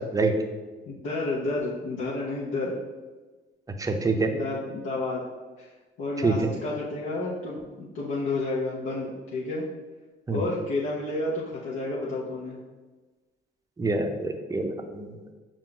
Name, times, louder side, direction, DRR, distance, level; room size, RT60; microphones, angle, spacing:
voice 1, 0.9-2.8 4.3-5.3 5.6-5.7 6.0-9.7 10.3-12.6, left 2 dB, 80° left, -6 dB, 0.7 m, -30 dB
voice 2, 3.8-4.3 6.2-6.3 10.3-10.4 13.8-15.2, right 3 dB, 15° right, 5 dB, 0.5 m, -26 dB
5.5 x 2.5 x 3.7 m, 1.3 s
cardioid pair, 90°, 20 cm